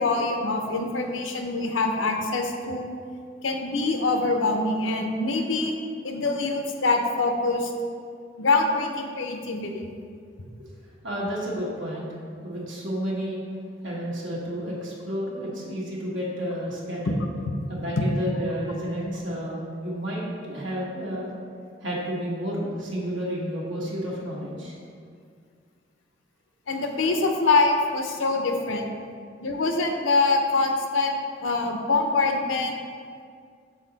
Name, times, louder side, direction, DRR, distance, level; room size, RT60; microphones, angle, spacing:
voice 1, 0.0-2.9 3.4-5.7 6.0-7.7 8.4-9.8 17.1-17.2 18.0-18.1 26.7-28.9 29.4-32.8, left 3 dB, 90° left, 3 dB, 0.7 m, -24 dB
voice 2, 11.0-12.1 12.4-13.4 13.8-17.2 17.7-21.3 21.8-24.7, equal, 80° right, -5 dB, 1.3 m, -31 dB
6.5 x 3.9 x 3.9 m, 2.2 s
head